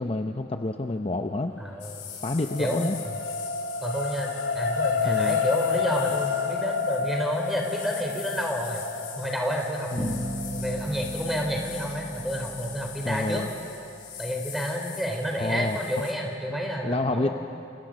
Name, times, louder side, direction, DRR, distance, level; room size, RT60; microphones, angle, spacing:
voice 1, 0.0-1.5 2.2-3.0 5.0-5.4 9.9-10.3 13.0-13.5 15.4-16.1 16.8-17.3, left 2 dB, 30° left, 5 dB, 0.7 m, -28 dB
voice 2, 1.6-2.1 2.6-3.1 3.8-8.9 9.2-13.4 14.2-17.3, equal, ahead, 1 dB, 3.7 m, -30 dB
sound 1, 1.7-14.2 14.7-14.8, left 6 dB, 85° left, 2.5 m, -31 dB
sound 2, 1.8-16.1, left 8 dB, 60° left, 5.0 m, -42 dB
sound 3, 10.0-13.9, right 1 dB, 25° right, 1.3 m, -37 dB
29.5 x 27.5 x 6.4 m, 2.7 s
head